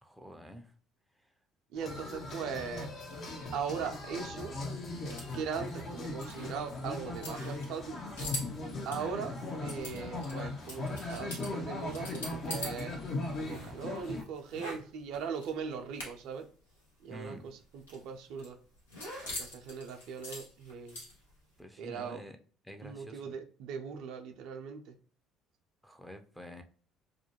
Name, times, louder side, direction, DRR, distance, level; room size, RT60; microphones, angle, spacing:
voice 1, 0.0-0.7 1.2-1.3 17.1-17.5 21.6-22.4 22.6-23.3 25.8-26.6, equal, ahead, 5 dB, 0.5 m, -48 dB
voice 2, 1.7-2.9 3.5-4.5 5.3-8.0 8.9-9.3 9.6-12.9 13.4-16.4 17.0-17.4 17.7-18.6 19.2-21.0 21.8-22.2 22.8-24.9, right 6 dB, 65° right, 4 dB, 0.4 m, -39 dB
sound 1, 1.8-14.2, left 2 dB, 50° left, 0.7 m, -39 dB
sound 2, 3.4-12.8 13.1-16.4 16.7-16.8 17.1-21.4, left 1 dB, 85° left, 0.8 m, -44 dB
2.3 x 2.2 x 3.0 m, 0.44 s
hypercardioid pair, 60°, 0 cm